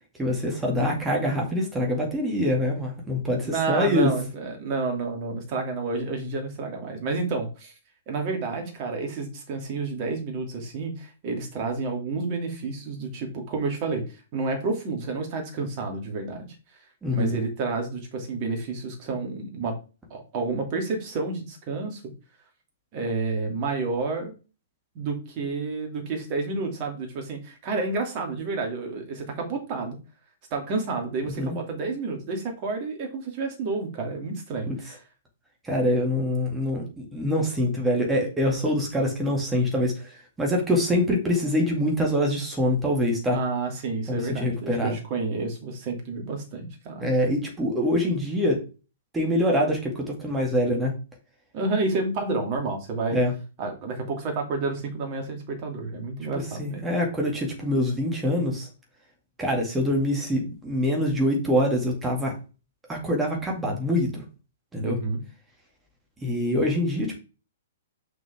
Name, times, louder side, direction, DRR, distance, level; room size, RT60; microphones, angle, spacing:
voice 1, 0.2-4.1 17.0-17.4 31.4-31.6 34.7-34.8 35.6-43.4 44.1-45.0 47.0-48.6 49.1-50.9 53.1-53.3 56.3-58.7 59.4-62.3 62.9-64.2 64.7-65.0 66.2-67.2, left 1 dB, 10° right, 0 dB, 2.1 m, -25 dB
voice 2, 3.4-7.7 8.1-16.5 17.1-19.8 20.1-22.0 22.9-24.3 24.9-30.0 30.5-35.0 43.3-47.1 51.5-53.2 53.6-56.8 64.8-65.2, right 3 dB, 35° right, 3 dB, 2.5 m, -30 dB
6.2 x 6.2 x 3.5 m, 0.32 s
figure-of-eight pair, 115°, 0 cm